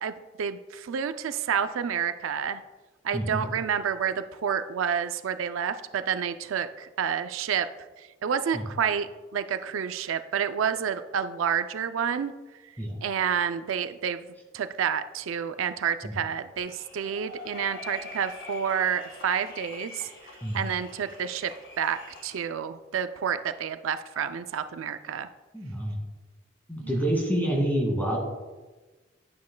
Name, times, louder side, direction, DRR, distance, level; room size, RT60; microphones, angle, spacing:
voice 1, 0.4-2.6 3.0-7.7 8.2-12.3 13.0-14.2 14.5-20.1 20.5-21.5 21.8-25.3 26.8-26.9, right 7 dB, 80° right, 11 dB, 0.4 m, -29 dB
voice 2, 3.1-3.5 8.5-8.6 12.8-13.0 16.0-16.2 20.4-20.7 25.5-26.0 26.7-28.2, right 1 dB, 10° left, -1 dB, 2.0 m, -27 dB
sound 1, 16.6-22.4, left 3 dB, 65° left, 1.8 m, -44 dB
10.5 x 9.4 x 2.2 m, 1.2 s
head